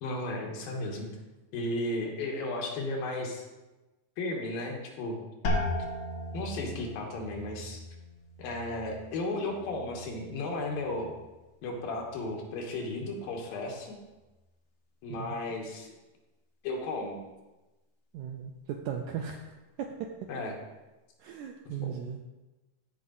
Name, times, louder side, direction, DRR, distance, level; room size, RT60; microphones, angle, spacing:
voice 1, 0.0-1.1 1.5-3.4 4.2-5.2 5.5-5.7 6.3-7.8 8.4-11.1 11.6-14.0 15.0-16.0 16.6-17.2 20.3-20.6 21.6-22.0, left 2 dB, 80° left, 0 dB, 3.2 m, -34 dB
sound 1, 5.4-11.1 11.4-12.1 12.6-13.1, left 1 dB, 60° left, 1.3 m, -37 dB
voice 2, 18.1-19.5 19.8-20.1 21.2-22.2, right 8 dB, 80° right, 3 dB, 1.7 m, -37 dB
14.0 x 4.9 x 4.0 m, 1.1 s
omnidirectional pair, 4.0 m